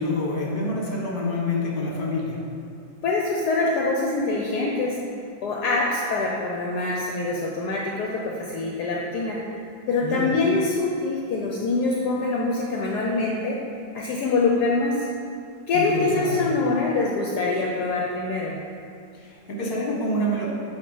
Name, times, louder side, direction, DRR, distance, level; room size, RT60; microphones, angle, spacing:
voice 1, 0.0-2.4 10.0-10.3 15.7-16.5 19.1-20.5, left 1 dB, 35° left, -3 dB, 1.2 m, -27 dB
voice 2, 3.0-5.0 5.4-9.4 9.9-13.6 13.9-15.1 15.7-18.6, left 3 dB, 70° left, -2 dB, 1.1 m, -24 dB
7.9 x 2.8 x 5.4 m, 2.5 s
omnidirectional pair, 1.9 m